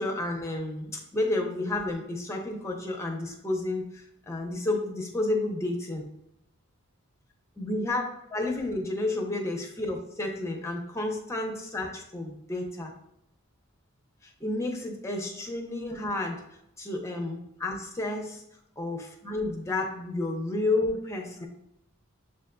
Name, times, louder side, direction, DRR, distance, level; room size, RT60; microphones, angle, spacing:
voice 1, 0.0-6.1 7.6-8.0 8.3-12.9 14.2-16.4 16.8-18.4 18.8-21.5, left 2 dB, 15° left, 1 dB, 0.6 m, -31 dB
7.4 x 2.5 x 2.2 m, 0.79 s
head